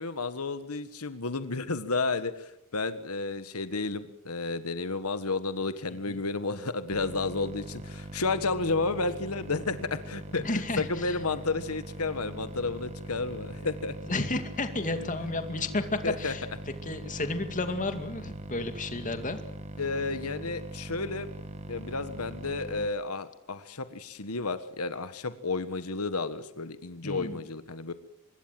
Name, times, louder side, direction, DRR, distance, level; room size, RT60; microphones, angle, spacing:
voice 1, 0.0-14.0 16.0-16.3 19.8-21.3 21.7-27.9, left 3 dB, 85° left, 11 dB, 1.5 m, -32 dB
voice 2, 5.9-6.2 10.4-11.2 14.0-16.4 16.8-19.4 27.0-27.4, left 2 dB, 35° left, 8 dB, 2.4 m, -32 dB
sound 1, 6.9-22.9, right 1 dB, 30° right, 1.9 m, -41 dB
25.0 x 21.5 x 7.7 m, 0.79 s
head